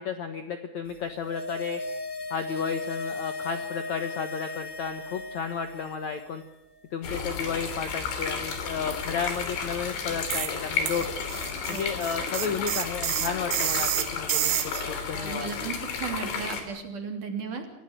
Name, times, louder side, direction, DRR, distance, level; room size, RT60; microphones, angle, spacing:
voice 1, 0.0-1.8 2.3-6.4 6.9-11.1 11.7-14.6 14.9-15.5, left 6 dB, 85° left, 8 dB, 1.6 m, -32 dB
sound 1, 0.9-6.4 6.7-6.8, left 3 dB, 25° left, 2.0 m, -37 dB
sound 2, 7.0-16.6, left 5 dB, 70° left, 5.5 m, -33 dB
sound 3, 10.3-10.6 10.9-14.9, right 12 dB, 70° right, 3.4 m, -29 dB
voice 2, 15.1-17.6, right 5 dB, 45° right, 5 dB, 4.2 m, -35 dB
28.0 x 16.5 x 9.0 m, 0.80 s
omnidirectional pair, 5.4 m